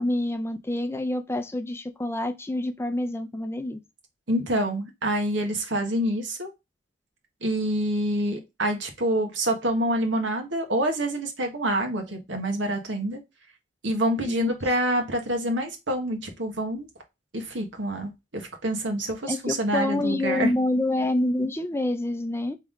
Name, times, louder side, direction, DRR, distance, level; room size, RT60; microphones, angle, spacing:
voice 1, 0.0-3.8 14.2-14.5 19.3-22.6, left 1 dB, 15° left, 0.5 m, -27 dB
voice 2, 4.3-6.5 7.4-13.2 13.8-16.9 17.3-20.5, right 1 dB, 85° right, 1.4 m, -27 dB
3.8 x 3.6 x 3.5 m
head